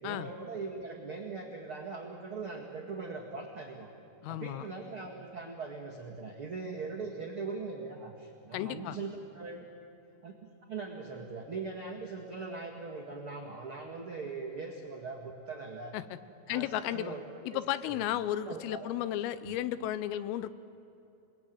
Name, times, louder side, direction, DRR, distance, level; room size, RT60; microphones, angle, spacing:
voice 1, 0.0-3.9 4.3-9.6 10.2-10.4 10.7-15.9 16.5-16.7 16.9-17.2 17.5-18.0 18.4-18.9 19.4-19.5, right 4 dB, 65° right, -1 dB, 1.3 m, -40 dB
voice 2, 4.2-4.7 8.5-9.0 15.9-16.2 16.5-17.2 17.4-20.5, left 12 dB, 90° left, 14 dB, 3.5 m, -34 dB
28.5 x 20.5 x 9.3 m, 2.8 s
omnidirectional pair, 5.7 m